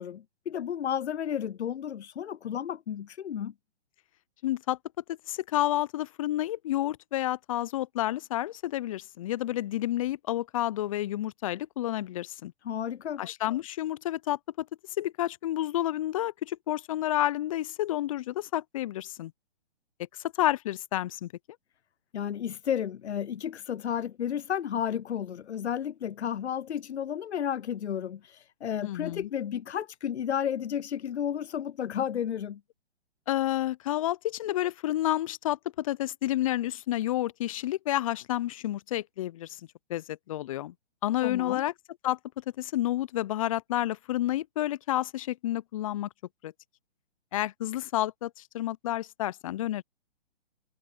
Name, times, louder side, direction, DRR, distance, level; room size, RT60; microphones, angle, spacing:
voice 1, 0.0-3.5 12.6-13.2 22.1-32.6 41.2-41.6, left 9 dB, 80° left, 0.6 m, -32 dB
voice 2, 4.4-4.8 5.1-12.5 13.2-14.7 15.0-19.3 20.4-21.3 28.8-29.3 33.3-39.6 39.9-40.7 41.0-41.7 42.0-42.2 42.6-46.1 46.4-46.5 47.3-49.8, left 14 dB, 30° left, 0.5 m, -30 dB
hypercardioid pair, 135°, 33 cm